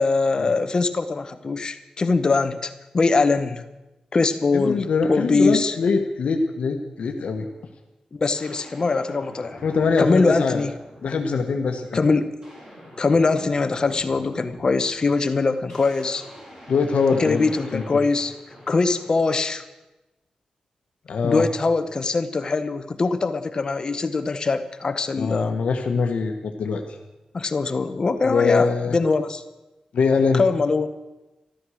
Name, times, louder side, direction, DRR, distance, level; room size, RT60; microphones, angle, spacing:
voice 1, 0.0-3.6 4.1-5.7 8.1-9.6 10.0-10.7 11.9-12.4 13.0-16.2 17.1-18.3 18.7-19.6 21.2-25.6 27.3-29.4 30.3-30.9, left 3 dB, 35° left, 9 dB, 0.9 m, -22 dB
voice 2, 4.5-7.5 9.6-10.6 11.0-12.1 16.7-17.8 21.1-21.5 25.2-26.8 28.2-29.0 29.9-30.4, left 4 dB, 75° left, 3 dB, 1.1 m, -23 dB
sound 1, 7.5-7.6 8.3-11.2 11.7-11.9 12.2-19.4, equal, 25° right, 4.8 m, -44 dB
13.0 x 13.0 x 6.3 m, 1.0 s
wide cardioid pair, 145°, 2 cm